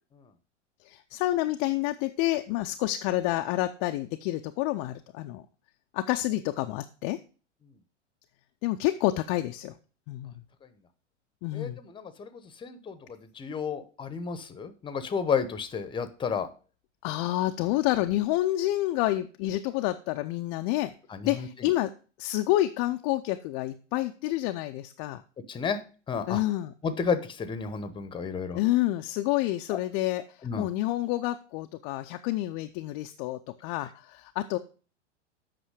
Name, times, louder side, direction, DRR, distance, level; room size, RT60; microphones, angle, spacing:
voice 1, 0.8-5.4 5.9-7.2 8.6-9.7 10.1-10.3 11.4-11.8 17.0-20.9 21.2-21.9 22.2-25.2 26.3-26.7 28.5-34.6, left 16 dB, 30° left, 6 dB, 0.4 m, -28 dB
voice 2, 11.5-16.5 21.1-21.7 25.5-25.8 26.1-26.4 26.8-28.6 29.7-29.8 30.4-30.7, left 6 dB, 15° left, 12 dB, 0.8 m, -32 dB
8.1 x 5.6 x 4.9 m, 0.37 s
figure-of-eight pair, 90°, 36 cm